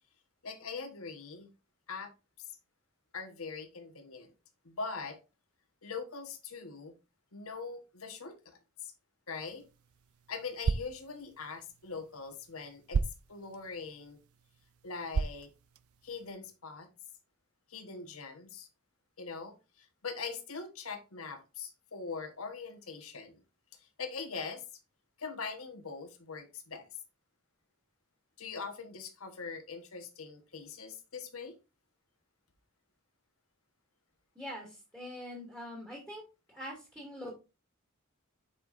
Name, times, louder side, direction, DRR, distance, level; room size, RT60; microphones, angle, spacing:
voice 1, 0.4-1.5 1.9-2.1 3.1-4.3 4.6-5.2 5.8-6.9 7.3-8.9 9.3-9.7 10.3-13.0 13.3-14.2 14.8-15.5 16.0-16.9 17.7-18.7 19.2-23.4 23.7-24.6 25.2-26.8 28.4-31.6, left 4 dB, 75° left, 1.3 m, -42 dB
sound 1, 9.4-16.3, right 5 dB, 80° right, 0.5 m, -38 dB
voice 2, 34.3-36.2 36.5-37.3, equal, 10° right, 2.5 m, -43 dB
7.8 x 5.6 x 2.6 m
head